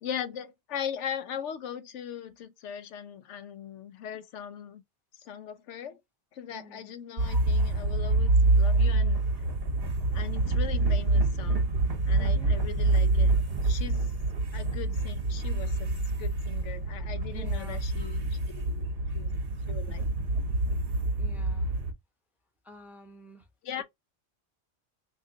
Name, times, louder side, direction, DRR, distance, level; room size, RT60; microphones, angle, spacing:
voice 1, 0.0-4.8 5.2-6.0 6.3-9.2 10.1-11.6 12.1-14.1 14.5-18.9 19.1-19.4 19.7-20.1 23.6-23.8, left 8 dB, 85° left, 0.9 m, -39 dB
voice 2, 6.5-6.9 12.2-12.6 17.3-17.8 21.2-21.7 22.6-23.4, right 1 dB, ahead, 0.7 m, -49 dB
sound 1, 7.2-21.9, right 2 dB, 60° right, 1.1 m, -26 dB
3.7 x 2.9 x 2.5 m
omnidirectional pair, 1.2 m